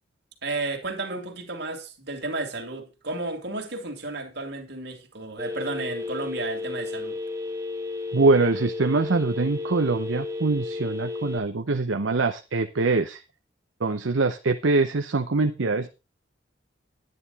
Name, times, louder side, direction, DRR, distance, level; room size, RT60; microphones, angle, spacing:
voice 1, 0.4-7.2, right 2 dB, 60° right, 2.5 m, -33 dB
Telephone, 5.4-11.4, left 3 dB, 15° right, 1.2 m, -33 dB
voice 2, 8.1-13.2 13.8-15.9, right 3 dB, 75° right, 0.7 m, -23 dB
10.5 x 9.6 x 4.1 m
head